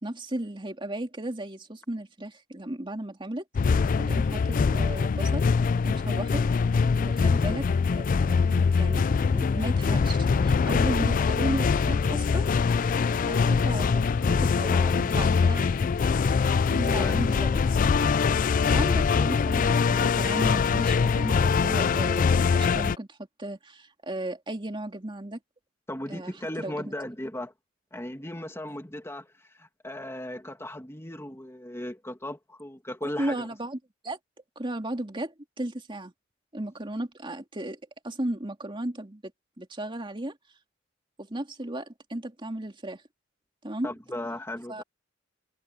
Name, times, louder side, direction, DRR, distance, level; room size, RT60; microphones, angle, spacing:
voice 1, 0.0-3.4 4.0-5.5 5.8-6.4 7.0-12.5 13.3-15.9 16.7-17.7 18.7-25.4 26.1-26.9 33.0-33.8 34.0-34.2 34.6-36.1 36.5-39.2 39.6-40.4 41.2-43.0 43.6-43.9 44.7-44.8, right 1 dB, 25° right, 2.7 m, -35 dB
sound 1, 3.5-23.0, left 5 dB, 45° left, 0.4 m, -23 dB
voice 2, 14.7-15.3 17.0-17.2 25.9-27.5 27.9-29.3 29.5-33.5 43.8-44.8, left 1 dB, 15° left, 2.3 m, -37 dB
head